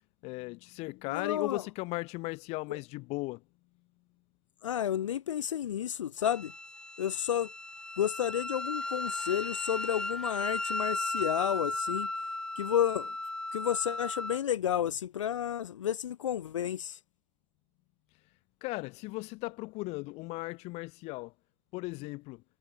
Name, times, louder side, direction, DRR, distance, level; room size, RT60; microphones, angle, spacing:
voice 1, 0.2-3.4 18.6-21.3 21.7-22.4, left 24 dB, 40° left, 3.7 m, -37 dB
voice 2, 1.1-1.6 2.7-2.8 4.6-6.5 7.0-7.5 8.0-12.1 12.6-13.1 13.5-17.0, left 10 dB, 70° left, 1.0 m, -31 dB
Wind instrument woodwind instrument, 6.2-14.4, left 2 dB, 5° left, 2.2 m, -36 dB
hypercardioid pair, 110°, 17 cm